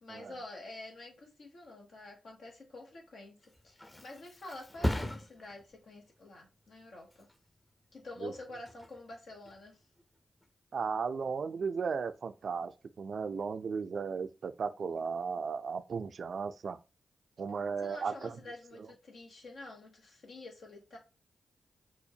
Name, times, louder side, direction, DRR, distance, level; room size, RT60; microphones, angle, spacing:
voice 1, 0.0-7.3 7.9-9.8 17.8-21.0, left 2 dB, 75° left, 0.8 m, -48 dB
Thump thud, 3.2-10.7 11.1-11.5, left 1 dB, 20° left, 0.7 m, -41 dB
voice 2, 10.7-12.7 13.0-16.8 17.4-18.4, right 5 dB, 70° right, 0.3 m, -35 dB
4.2 x 2.1 x 2.7 m
supercardioid pair, 45°, 0 cm